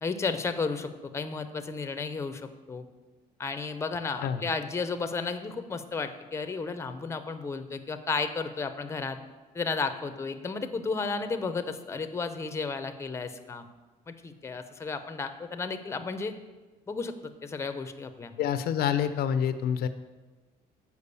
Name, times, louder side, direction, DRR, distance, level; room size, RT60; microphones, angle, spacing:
voice 1, 0.0-2.8 3.4-9.2 9.5-13.7 14.1-16.3 16.9-17.1 17.4-18.3, left 4 dB, 15° left, 9 dB, 0.6 m, -33 dB
voice 2, 18.4-19.9, left 8 dB, 65° left, 11 dB, 0.5 m, -27 dB
6.9 x 4.7 x 6.8 m, 1.2 s
cardioid pair, 110°, 17 cm